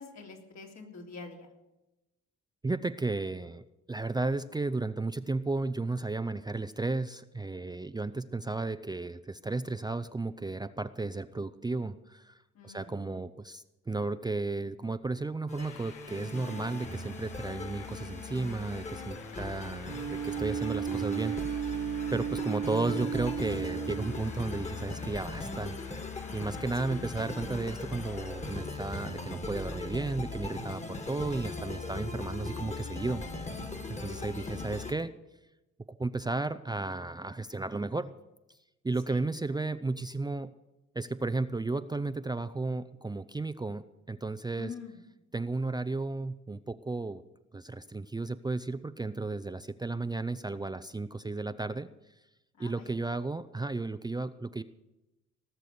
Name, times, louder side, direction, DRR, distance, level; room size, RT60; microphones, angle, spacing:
voice 1, 0.0-1.5 12.5-12.9 19.3-19.5 22.4-22.6 26.9-27.0 34.0-34.5 39.1-39.2 44.6-45.0 52.6-52.9, left 4 dB, 65° left, 2 dB, 3.2 m, -46 dB
voice 2, 2.6-12.4 12.6-21.8 22.1-25.8 26.3-33.3 33.9-35.1 36.0-38.2 38.8-40.5 40.9-44.7 45.3-47.2 47.5-51.9 52.6-54.6, right 3 dB, 15° right, 11 dB, 0.5 m, -34 dB
sound 1, 15.5-34.9, left 3 dB, 25° left, 1.8 m, -39 dB
Train, 15.6-28.6, left 8 dB, 80° left, 1.3 m, -52 dB
Wind instrument woodwind instrument, 19.9-24.6, right 9 dB, 70° right, 1.8 m, -34 dB
18.5 x 6.8 x 9.4 m, 0.98 s
cardioid pair, 90°, 30 cm